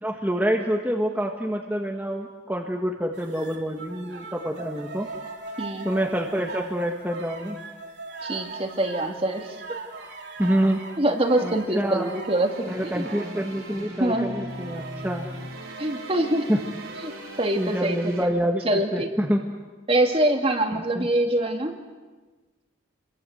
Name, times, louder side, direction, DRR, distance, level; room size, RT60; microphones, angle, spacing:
voice 1, 0.0-5.1 5.8-7.6 10.4-10.8 11.4-12.1 12.6-15.3 16.5-16.6 17.5-19.4 20.9-21.1, equal, 10° right, 0 dB, 1.7 m, -26 dB
sound 1, 3.1-13.8 14.5-17.8, right 3 dB, 55° right, 3.9 m, -40 dB
voice 2, 8.2-9.6 11.0-13.0 14.0-14.4 15.8-16.5 17.0-17.1 17.4-18.3 18.6-19.1 19.9-21.8, right 1 dB, 30° right, 4 dB, 2.3 m, -24 dB
sound 2, 12.4-18.2, right 1 dB, 90° right, 4.7 m, -40 dB
29.5 x 22.5 x 8.1 m, 1.3 s
head